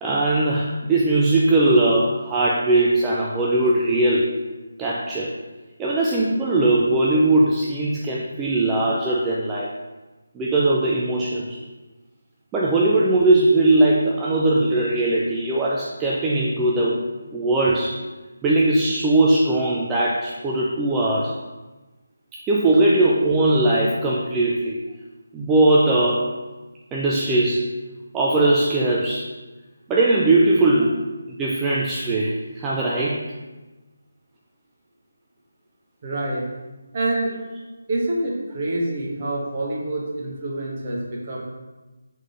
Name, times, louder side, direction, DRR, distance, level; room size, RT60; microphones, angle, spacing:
voice 1, 0.0-4.4 4.8-5.3 5.8-9.7 10.3-11.6 12.5-17.0 17.3-18.0 18.4-21.4 22.5-24.8 25.3-26.4 26.9-27.7 28.1-29.3 29.9-31.1 31.4-33.3, right 2 dB, 10° right, -5 dB, 0.3 m, -20 dB
voice 2, 36.0-36.4 36.9-37.3 37.9-41.4, right 1 dB, 35° right, -3 dB, 1.0 m, -26 dB
3.7 x 3.1 x 3.9 m, 1.2 s
figure-of-eight pair, 160°, 0 cm